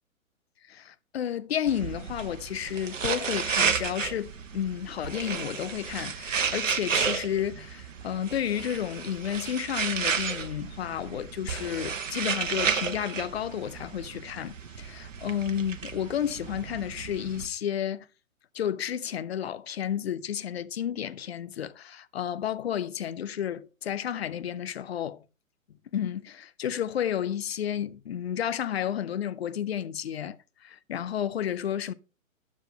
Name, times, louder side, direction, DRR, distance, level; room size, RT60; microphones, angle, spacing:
voice 1, 0.7-18.1 18.5-25.2 25.9-31.9, left 9 dB, 50° left, 0.6 m, -31 dB
sound 1, 1.7-17.5, right 6 dB, 65° right, 1.1 m, -32 dB
10.0 x 7.3 x 3.9 m
figure-of-eight pair, 125°, 41 cm